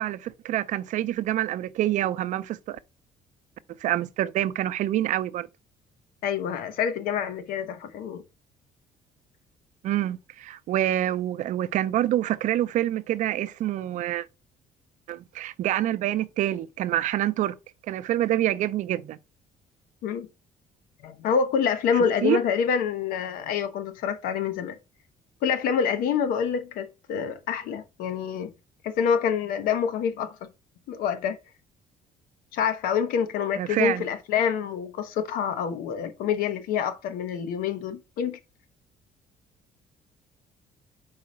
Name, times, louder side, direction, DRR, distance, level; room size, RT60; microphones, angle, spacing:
voice 1, 0.0-2.8 3.8-5.5 9.8-14.3 15.1-17.6 17.9-19.2 22.2-22.4 33.6-34.0, right 13 dB, 60° right, 0.5 m, -26 dB
voice 2, 6.2-8.2 20.0-20.3 21.0-24.8 25.4-28.5 28.8-30.4 30.9-31.4 32.5-38.4, left 7 dB, 90° left, 0.9 m, -27 dB
4.8 x 4.1 x 5.9 m
cardioid pair, 150°, 14 cm